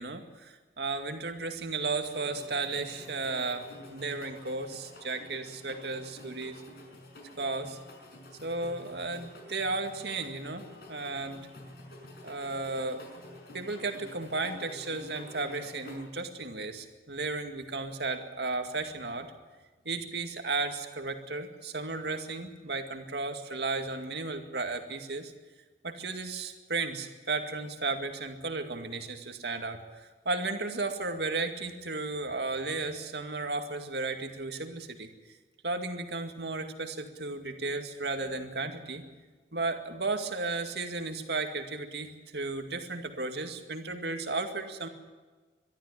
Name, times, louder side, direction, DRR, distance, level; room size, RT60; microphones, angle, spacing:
voice 1, 0.0-6.6 7.4-7.8 8.4-11.5 12.2-13.0 13.5-19.3 19.9-25.3 25.8-35.1 35.6-39.0 39.5-44.9, right 3 dB, 65° right, 6 dB, 2.2 m, -34 dB
sound 1, 2.0-16.0, left 1 dB, 60° left, 6.0 m, -49 dB
23.0 x 13.0 x 9.9 m, 1.3 s
head